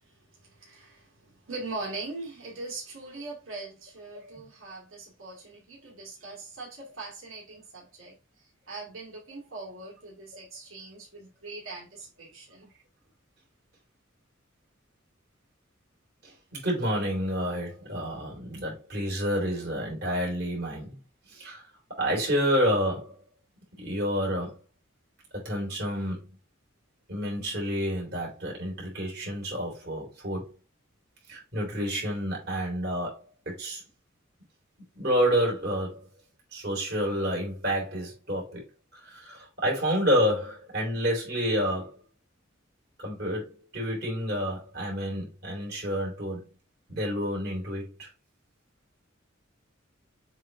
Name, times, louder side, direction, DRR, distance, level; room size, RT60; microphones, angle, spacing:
voice 1, 0.3-12.7, right 3 dB, 85° right, 2.3 m, -41 dB
voice 2, 4.1-4.4 16.2-21.0 21.3-21.6 21.9-23.2 23.8-24.6 25.3-26.3 27.1-30.5 31.3-33.2 33.5-33.8 34.9-36.0 36.5-38.6 38.9-41.9 43.0-46.5 46.9-48.1, equal, 50° right, 3.5 m, -29 dB
7.3 x 3.3 x 3.9 m
head